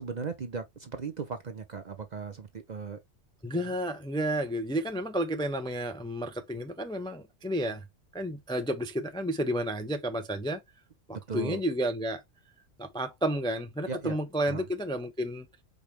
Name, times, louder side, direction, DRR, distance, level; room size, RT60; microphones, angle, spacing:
voice 1, 0.0-3.0 3.6-3.7 11.1-11.6 13.9-14.2 14.5-14.7, right 5 dB, 45° right, 0.6 m, -37 dB
voice 2, 3.4-7.8 8.1-10.6 11.1-12.2 12.8-15.5, right 1 dB, 5° left, 0.4 m, -31 dB
5.0 x 3.0 x 3.2 m
omnidirectional pair, 1.2 m